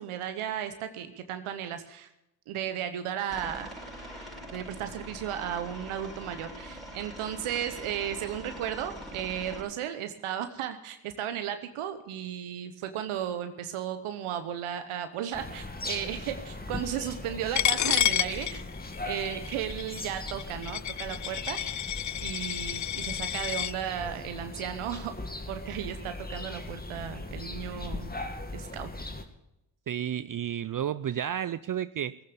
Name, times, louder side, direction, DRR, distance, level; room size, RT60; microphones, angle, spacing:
voice 1, 0.0-2.1 2.5-3.7 4.5-18.6 19.0-21.6 22.2-25.1 25.5-28.1 28.5-28.9, right 10 dB, 85° right, 9 dB, 1.1 m, -35 dB
Aircraft, 3.3-9.6, equal, ahead, 5.5 m, -43 dB
sound 1, 15.3-29.2, left 2 dB, 20° left, 2.2 m, -39 dB
Coin (dropping), 17.5-23.7, left 11 dB, 40° left, 0.5 m, -30 dB
voice 2, 29.9-32.2, right 10 dB, 45° right, 16 dB, 0.5 m, -31 dB
17.5 x 9.1 x 6.9 m, 0.86 s
supercardioid pair, 45°, 49 cm